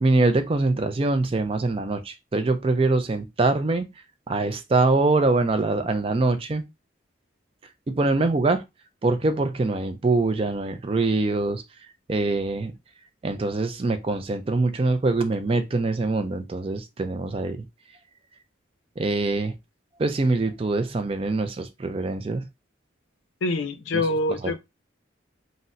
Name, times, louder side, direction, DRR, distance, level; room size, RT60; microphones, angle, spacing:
voice 1, 0.0-3.9 4.3-6.6 7.9-8.6 9.0-11.6 12.1-12.7 13.2-17.6 19.0-19.5 20.0-22.5 23.9-24.0, right 3 dB, 30° right, 0.4 m, -23 dB
voice 2, 23.4-24.6, left 2 dB, 90° left, 0.5 m, -25 dB
4.0 x 2.1 x 2.5 m
head